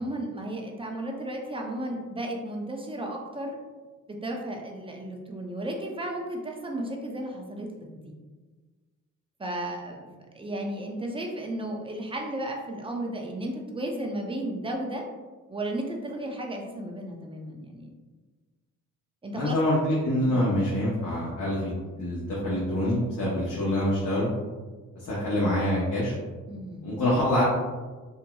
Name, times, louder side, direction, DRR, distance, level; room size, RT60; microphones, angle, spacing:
voice 1, 0.0-3.6 4.1-8.1 9.4-10.1 10.3-15.0 15.5-17.9 19.2-19.6 20.2-20.5 26.5-26.9, right 1 dB, 15° right, 1 dB, 0.5 m, -34 dB
voice 2, 19.3-24.3 25.0-26.1 26.8-27.4, left 1 dB, 70° left, -7 dB, 0.8 m, -26 dB
2.9 x 2.7 x 2.2 m, 1.3 s
cardioid pair, 70°, 32 cm